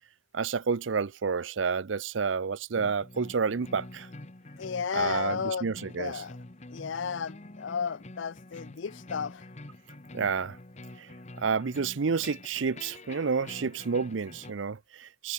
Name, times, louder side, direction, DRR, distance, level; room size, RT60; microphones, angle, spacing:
voice 1, 0.3-4.1 4.9-6.2 10.1-10.6 11.0-11.1 11.4-15.3, right 5 dB, 80° right, 0.6 m, -30 dB
sound 1, 2.7-14.5, left 2 dB, 35° left, 1.3 m, -47 dB
voice 2, 4.6-6.4 6.7-9.4, left 6 dB, 75° left, 0.5 m, -33 dB
head